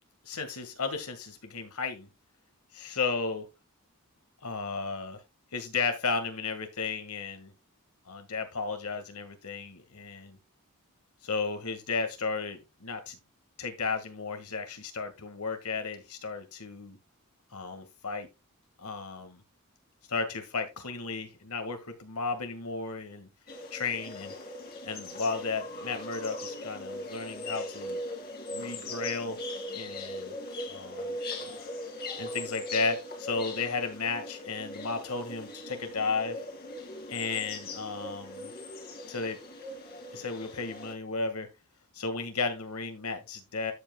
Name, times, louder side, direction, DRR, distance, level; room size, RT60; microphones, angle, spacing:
voice 1, 0.2-2.1 2.7-3.5 4.4-5.2 5.5-7.5 8.1-10.4 11.2-13.2 13.6-17.0 17.5-18.3 18.8-19.4 20.1-23.3 23.7-24.3 24.8-28.0 28.5-29.4 29.7-30.4 30.7-31.6 32.2-36.5 37.1-38.5 39.1-39.4 40.1-41.5 41.9-43.7, left 4 dB, 80° left, 1.9 m, -34 dB
sound 1, 23.5-40.9, left 1 dB, 45° left, 2.1 m, -40 dB
13.5 x 5.4 x 2.3 m
head